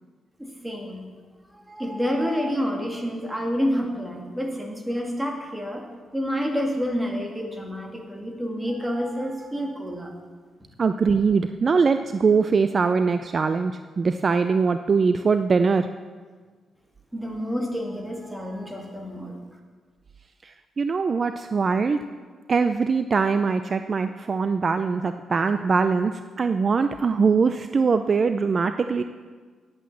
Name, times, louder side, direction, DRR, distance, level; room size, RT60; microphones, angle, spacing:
voice 1, 0.4-1.0 1.5-5.8 6.1-10.1 17.1-19.3, equal, 5° right, 1 dB, 2.0 m, -28 dB
voice 2, 10.8-15.9 20.4-22.0 22.5-29.0, right 5 dB, 40° right, 9 dB, 0.4 m, -22 dB
11.0 x 8.4 x 7.4 m, 1.5 s
cardioid pair, 120°, 0 cm